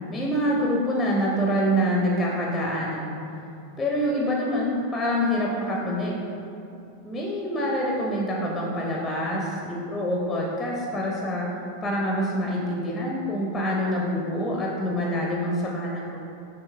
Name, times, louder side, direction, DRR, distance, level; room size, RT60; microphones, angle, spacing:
voice 1, 0.1-3.1 3.8-6.2 7.0-11.5 11.8-16.3, equal, 10° left, -3 dB, 0.5 m, -26 dB
5.4 x 2.9 x 2.3 m, 2.7 s
figure-of-eight pair, 90°, 0 cm